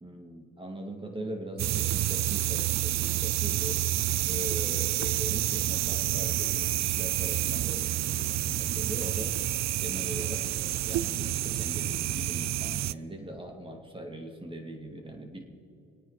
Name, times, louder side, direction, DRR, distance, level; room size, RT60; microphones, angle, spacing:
voice 1, 0.0-9.4 9.8-10.5 10.8-15.4, right 1 dB, 15° right, 3 dB, 2.6 m, -41 dB
sound 1, 1.6-12.9, right 14 dB, 60° right, 0.5 m, -29 dB
27.5 x 9.2 x 4.2 m, 2.8 s
cardioid pair, 90°, 30 cm